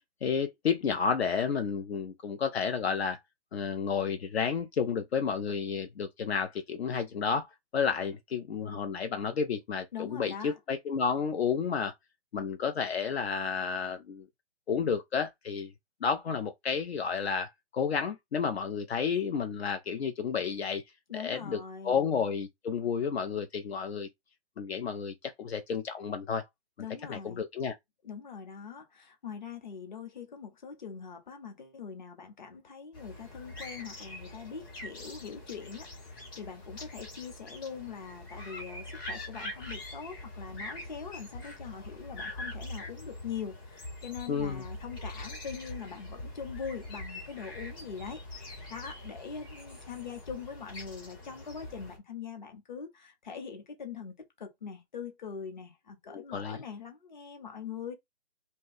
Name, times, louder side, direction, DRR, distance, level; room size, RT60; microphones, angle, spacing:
voice 1, 0.2-3.2 3.5-7.5 7.7-11.9 12.3-14.3 14.7-15.7 16.0-20.8 21.1-24.1 24.6-26.4 27.1-27.7 44.3-44.6 56.1-56.6, left 6 dB, 75° left, 0.6 m, -31 dB
voice 2, 9.9-10.6 21.1-22.0 26.8-27.4 28.0-57.9, left 6 dB, 45° left, 0.8 m, -42 dB
sound 1, 32.9-52.0, left 1 dB, 20° left, 1.1 m, -43 dB
2.7 x 2.2 x 3.9 m
hypercardioid pair, 170°, 32 cm